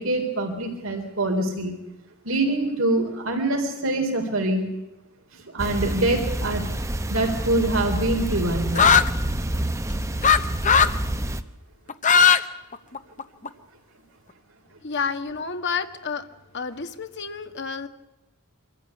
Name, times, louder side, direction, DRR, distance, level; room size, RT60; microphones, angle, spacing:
voice 1, 0.0-1.8 2.2-4.7 5.3-6.7 7.1-9.0, right 2 dB, 65° right, 3 dB, 3.8 m, -25 dB
sound 1, 5.6-11.4, right 1 dB, 15° right, 0.9 m, -28 dB
sound 2, 8.8-9.1 10.2-10.4 10.6-11.0 11.9-12.4 12.7-13.5, left 6 dB, 35° left, 0.9 m, -16 dB
voice 2, 14.8-16.3 16.5-17.9, left 5 dB, 55° left, 8 dB, 1.5 m, -30 dB
24.5 x 15.0 x 9.8 m, 0.97 s
head